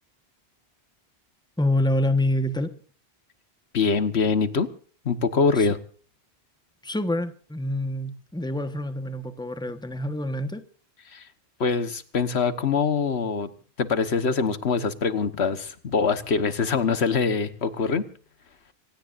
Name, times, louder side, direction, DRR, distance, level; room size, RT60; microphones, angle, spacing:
voice 1, 1.6-2.7 5.6-5.7 6.8-10.6, left 1 dB, 5° left, 9 dB, 1.2 m, -26 dB
voice 2, 3.7-4.7 5.0-5.8 11.1-11.3 11.6-13.5 13.8-18.1, left 5 dB, 85° left, 11 dB, 1.5 m, -24 dB
26.5 x 18.0 x 2.6 m, 0.42 s
omnidirectional pair, 1.1 m